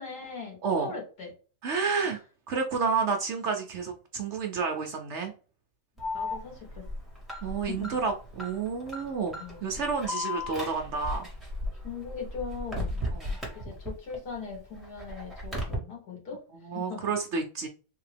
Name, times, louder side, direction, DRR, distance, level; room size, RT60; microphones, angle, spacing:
voice 1, 0.0-1.3 2.0-2.2 6.1-6.9 7.6-8.0 9.4-9.8 11.8-13.0 13.5-17.1, left 5 dB, 80° left, 0 dB, 2.1 m, -40 dB
voice 2, 0.6-0.9 1.6-2.2 2.5-5.3 7.4-11.3 13.1-13.4 16.5-17.7, right 5 dB, 60° right, 4 dB, 0.7 m, -30 dB
Alarm, 6.0-14.1 14.5-15.7, left 1 dB, ahead, 1.3 m, -36 dB
3.6 x 2.7 x 3.3 m, 0.36 s
omnidirectional pair, 1.7 m